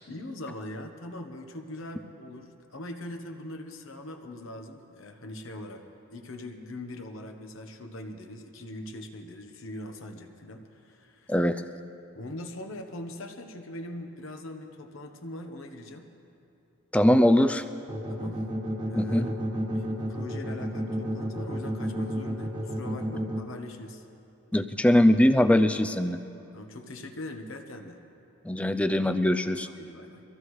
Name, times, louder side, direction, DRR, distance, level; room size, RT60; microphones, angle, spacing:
voice 1, 0.0-5.8 6.1-11.4 12.1-16.1 18.1-18.4 18.8-19.4 19.7-24.1 26.5-28.0 29.6-30.2, left 1 dB, 60° left, 5 dB, 1.0 m, -41 dB
voice 2, 11.3-11.6 16.9-17.6 19.0-19.3 24.5-26.2 28.4-29.7, left 1 dB, 5° left, 10 dB, 0.4 m, -21 dB
sound 1, 17.9-23.4, right 1 dB, 20° right, 1.3 m, -31 dB
23.5 x 15.0 x 3.2 m, 2.8 s
head